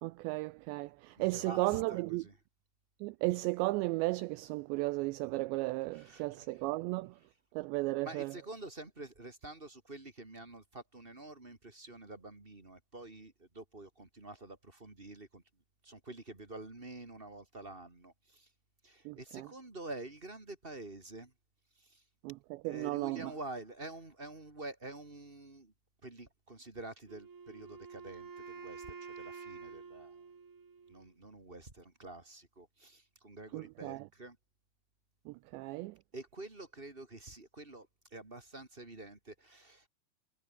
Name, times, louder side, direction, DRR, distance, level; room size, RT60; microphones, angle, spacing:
voice 1, 0.0-2.2 3.0-7.2 7.5-8.3 19.1-19.5 22.2-23.3 33.5-34.0 35.3-36.0, right 21 dB, 85° right, 2.5 m, -35 dB
voice 2, 0.8-2.4 5.9-6.6 8.0-15.4 15.8-18.5 18.8-21.3 21.7-22.0 22.6-25.7 26.0-30.3 30.9-34.4 36.1-39.9, right 2 dB, 15° right, 2.0 m, -48 dB
Wind instrument woodwind instrument, 27.1-31.1, right 5 dB, 65° right, 9.5 m, -49 dB
omnidirectional pair, 5.7 m